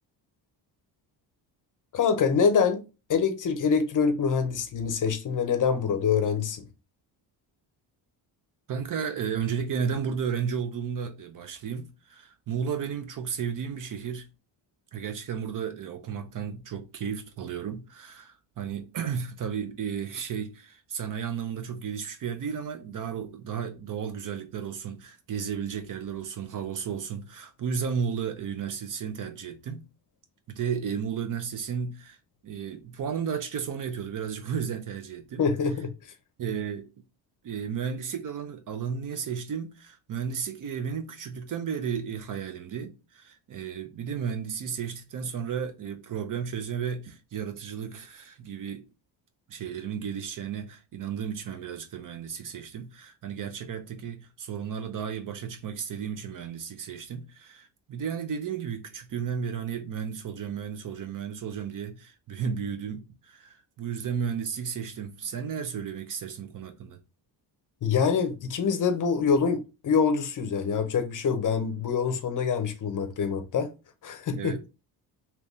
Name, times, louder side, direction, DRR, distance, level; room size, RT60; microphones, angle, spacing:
voice 1, 1.9-2.8 3.1-6.7 35.4-35.9 67.8-73.7 74.0-74.6, left 6 dB, 45° left, 0.7 m, -25 dB
voice 2, 8.7-14.3 14.9-29.8 30.5-32.2 32.4-35.4 36.4-36.9 37.4-48.8 49.5-67.0 74.3-74.6, right 7 dB, 45° right, 0.6 m, -33 dB
3.3 x 2.9 x 2.7 m
cardioid pair, 115°, 44 cm